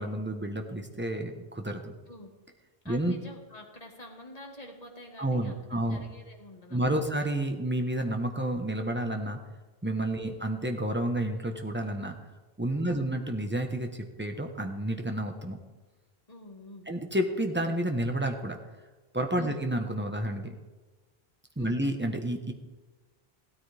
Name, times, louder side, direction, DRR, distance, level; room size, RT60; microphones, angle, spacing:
voice 1, 0.0-1.9 2.8-3.1 5.2-6.0 6.7-9.4 9.8-12.2 12.6-13.9 14.2-15.6 16.9-18.6 19.1-20.6 21.6-22.5, right 1 dB, 10° right, 4 dB, 1.1 m, -30 dB
voice 2, 2.8-7.0 10.1-10.4 12.9-13.1 16.3-16.9 19.4-19.6 21.6-21.8, left 1 dB, 40° left, 1 dB, 2.0 m, -48 dB
16.0 x 13.0 x 3.5 m, 1.2 s
omnidirectional pair, 1.1 m